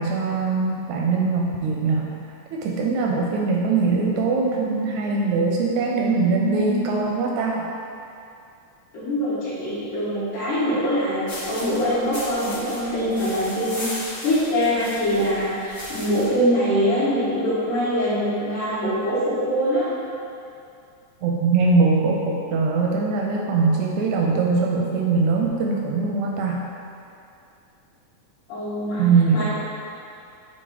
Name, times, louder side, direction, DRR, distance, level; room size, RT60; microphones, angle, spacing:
voice 1, 0.0-2.2 2.5-7.7 21.2-26.7 29.0-29.4, right 4 dB, 80° right, -1 dB, 1.6 m, -22 dB
voice 2, 8.9-19.9 28.5-29.1 29.3-29.4, equal, 80° left, -16 dB, 3.2 m, -23 dB
sound 1, 11.3-16.4, left 1 dB, 45° left, 0.9 m, -36 dB
8.5 x 3.6 x 3.9 m, 2.6 s
omnidirectional pair, 3.6 m